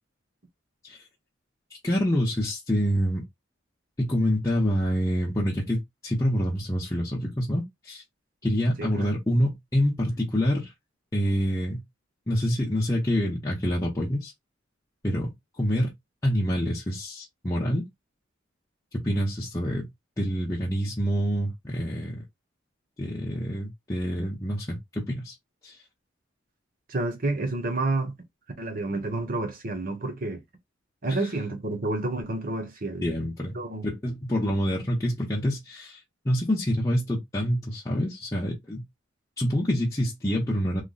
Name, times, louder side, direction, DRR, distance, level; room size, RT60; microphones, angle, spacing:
voice 1, 1.8-3.2 4.0-8.0 8.4-10.7 11.1-11.8 12.3-14.3 15.0-15.9 16.2-17.9 18.9-19.9 20.2-22.2 23.0-25.3 25.6-25.8 31.1-31.2 33.0-33.6 33.8-38.8 39.4-40.8, equal, 15° left, 0.8 m, -26 dB
voice 2, 26.9-28.2 28.6-30.4 31.0-33.1 33.5-33.9, right 2 dB, 45° right, 0.9 m, -29 dB
3.2 x 2.1 x 3.9 m
head